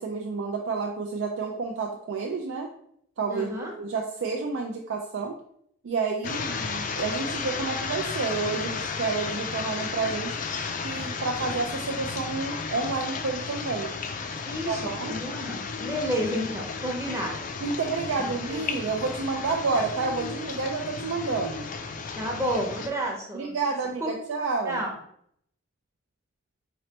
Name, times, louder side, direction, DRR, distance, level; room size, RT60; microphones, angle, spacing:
voice 1, 0.0-2.7 3.2-3.5 3.8-5.4 5.8-10.4 10.8-13.9 14.7-15.1 17.6-21.7 23.3-24.8, right 4 dB, 80° right, 2 dB, 0.4 m, -30 dB
voice 2, 3.3-3.7 14.4-17.5 18.2-18.6 22.2-23.5 24.0-24.1 24.6-24.9, equal, 15° right, -1 dB, 0.7 m, -31 dB
sound 1, 6.2-22.9, left 5 dB, 40° left, 0.3 m, -33 dB
4.1 x 3.1 x 2.9 m, 0.68 s
head